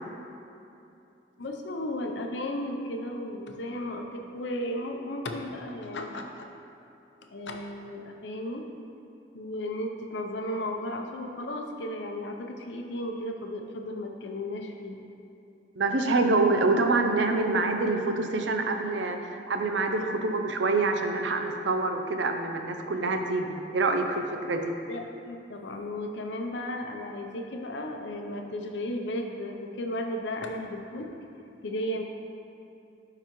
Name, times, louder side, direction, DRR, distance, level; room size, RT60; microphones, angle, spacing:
voice 1, 1.4-6.5 7.3-8.6 9.3-15.0 24.9-31.1 31.6-32.0, left 1 dB, 80° left, 3 dB, 0.6 m, -34 dB
voice 2, 15.8-24.7, right 3 dB, 90° right, 5 dB, 0.6 m, -26 dB
11.5 x 3.9 x 3.0 m, 2.7 s
head